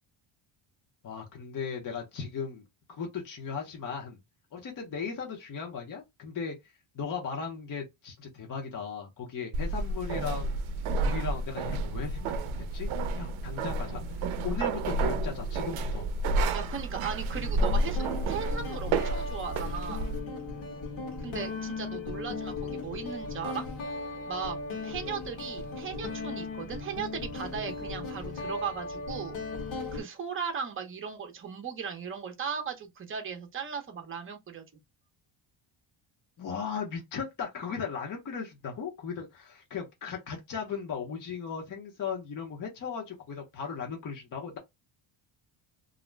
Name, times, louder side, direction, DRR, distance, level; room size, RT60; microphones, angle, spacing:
voice 1, 1.0-2.6 2.9-4.2 4.5-10.5 11.0-12.9 13.1-16.1 36.4-44.6, left 6 dB, 40° left, 0.8 m, -37 dB
sound 1, 9.5-20.2, right 2 dB, 70° right, 0.6 m, -30 dB
Guitar, 16.1-16.3 17.3-30.0, left 3 dB, 65° left, 1.2 m, -37 dB
voice 2, 16.5-20.1 21.2-23.6 24.3-24.6 24.8-29.3 29.9-34.6, right 6 dB, 25° right, 0.6 m, -37 dB
2.4 x 2.0 x 3.2 m
cardioid pair, 145°, 50 cm